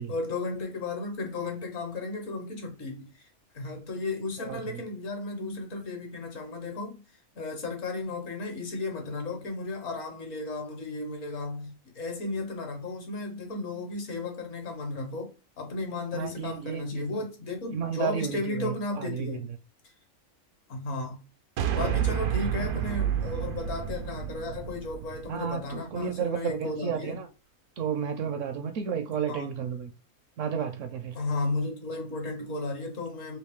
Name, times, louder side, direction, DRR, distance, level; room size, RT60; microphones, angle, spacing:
voice 1, 0.0-3.3 3.5-7.0 7.3-19.5 20.7-21.2 21.7-27.2 29.3-29.5 31.1-33.4, left 3 dB, 65° left, 1.4 m, -34 dB
voice 2, 4.4-4.8 16.1-17.2 17.7-19.4 25.3-27.3 27.8-29.9 30.4-31.2, right 7 dB, 70° right, 0.8 m, -32 dB
sound 1, 21.6-26.0, right 10 dB, 90° right, 1.1 m, -30 dB
3.2 x 2.8 x 3.5 m
omnidirectional pair, 1.5 m